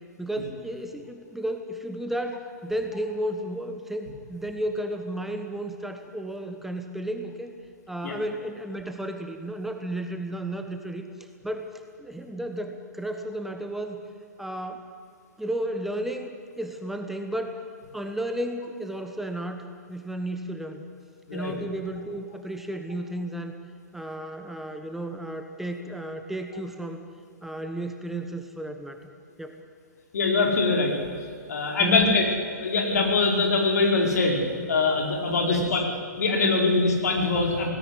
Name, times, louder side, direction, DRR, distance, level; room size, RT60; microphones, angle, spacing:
voice 1, 0.2-7.5 7.9-11.0 11.4-11.7 12.0-14.0 14.4-14.8 15.4-17.5 17.9-19.6 19.9-20.8 21.3-23.6 23.9-27.0 27.4-29.0 29.4-29.6 31.8-32.1 35.5-35.8, right 1 dB, 5° right, 5 dB, 1.2 m, -33 dB
voice 2, 30.1-30.9 31.5-32.3 32.6-34.4 34.7-35.8 36.2-37.7, left 3 dB, 65° left, 1 dB, 4.8 m, -23 dB
18.5 x 17.0 x 9.7 m, 2.3 s
figure-of-eight pair, 115°, 9 cm